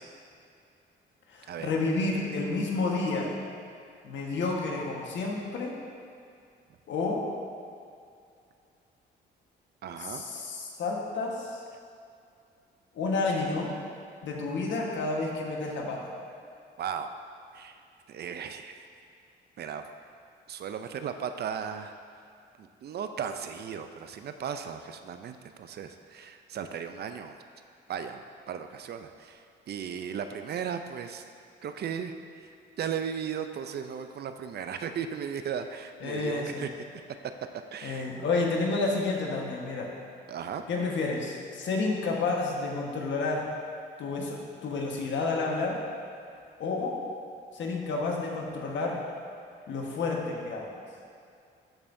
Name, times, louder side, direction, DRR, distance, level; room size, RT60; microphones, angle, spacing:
voice 1, 1.3-3.4 4.0-5.7 6.9-7.2 10.0-11.6 12.9-13.7 14.2-16.1 36.0-36.7 37.8-39.9 40.7-43.5 44.0-45.8 46.6-47.0 47.5-49.0 49.7-50.7, left 3 dB, 70° left, -1 dB, 1.4 m, -30 dB
voice 2, 9.8-10.2 16.8-17.1 17.5-17.8 18.1-18.9 19.6-19.8 20.5-22.0 22.6-27.4 27.9-31.2 31.6-32.5 32.8-36.7 37.7-38.1 40.3-40.6, right 7 dB, 55° right, 8 dB, 0.5 m, -36 dB
13.0 x 5.4 x 2.6 m, 2.4 s
cardioid pair, 90°, 20 cm